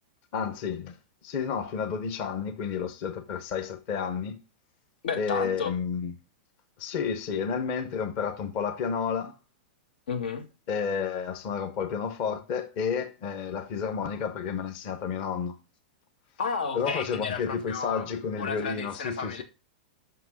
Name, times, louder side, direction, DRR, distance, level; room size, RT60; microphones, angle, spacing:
voice 1, 0.3-1.0 1.2-4.4 5.2-6.1 6.8-9.3 10.7-15.6 16.7-19.4, left 6 dB, 30° left, 0.7 m, -31 dB
voice 2, 5.0-5.7 10.1-10.5 16.4-18.1 18.4-19.4, left 5 dB, 90° left, 2.0 m, -32 dB
5.8 x 5.8 x 6.1 m
supercardioid pair, 180°, 5 cm